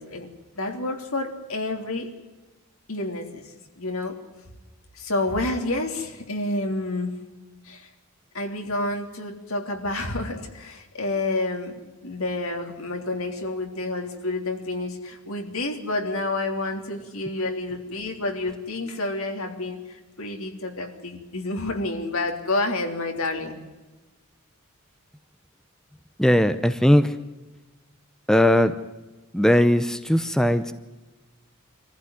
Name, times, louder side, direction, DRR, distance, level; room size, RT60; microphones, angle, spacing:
voice 1, 0.0-2.1 2.9-4.2 4.9-7.1 7.6-7.9 8.3-23.6, left 2 dB, 75° left, 4 dB, 3.4 m, -29 dB
voice 2, 26.2-27.1 28.3-28.7 29.3-30.7, equal, 5° left, 10 dB, 0.7 m, -19 dB
24.5 x 15.0 x 9.5 m, 1.1 s
head